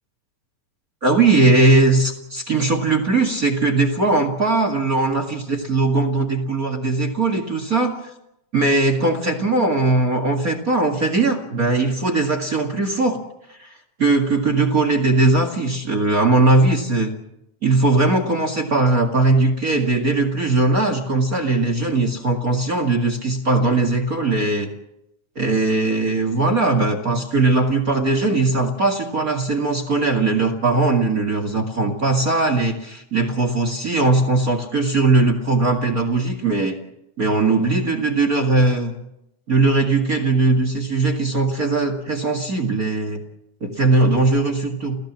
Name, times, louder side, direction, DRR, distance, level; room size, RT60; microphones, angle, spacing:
voice 1, 1.0-8.0 8.5-13.2 13.5-13.7 14.0-17.1 17.6-24.7 25.4-36.8 37.2-38.9 39.5-43.2 43.6-45.0, right 3 dB, 30° right, 6 dB, 2.0 m, -19 dB
29.0 x 16.5 x 7.4 m, 0.85 s
omnidirectional pair, 3.6 m